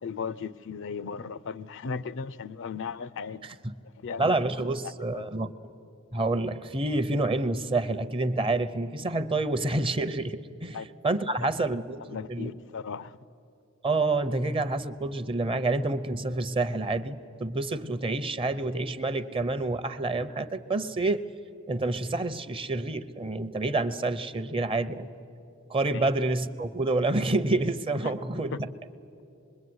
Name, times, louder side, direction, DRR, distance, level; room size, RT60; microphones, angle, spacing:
voice 1, 0.0-3.5 4.0-4.3 5.1-5.2 10.7-10.9 12.1-13.2 25.9-26.1 28.5-28.6, left 5 dB, 60° left, 0.5 m, -36 dB
voice 2, 4.2-5.5 6.1-10.8 11.0-12.5 13.8-21.2 21.7-25.1 25.7-28.7, right 2 dB, 25° right, 0.7 m, -28 dB
25.5 x 22.0 x 9.5 m
head